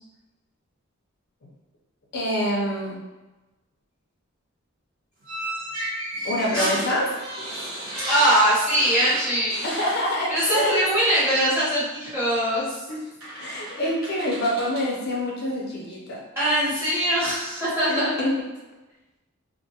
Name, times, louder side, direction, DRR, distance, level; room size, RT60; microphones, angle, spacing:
voice 1, 2.1-3.0 6.2-7.1 9.6-10.8 12.9-13.0 13.4-16.2 17.9-18.3, left 1 dB, 50° left, -3 dB, 0.4 m, -26 dB
sound 1, 5.2-10.7 11.0-11.2 12.5-12.6 13.2-14.9, right 1 dB, 70° right, 1.0 m, -33 dB
voice 2, 8.1-9.7 10.3-12.8 16.4-18.3, right 1 dB, 10° right, -10 dB, 0.9 m, -22 dB
2.4 x 2.2 x 2.8 m, 1.1 s
head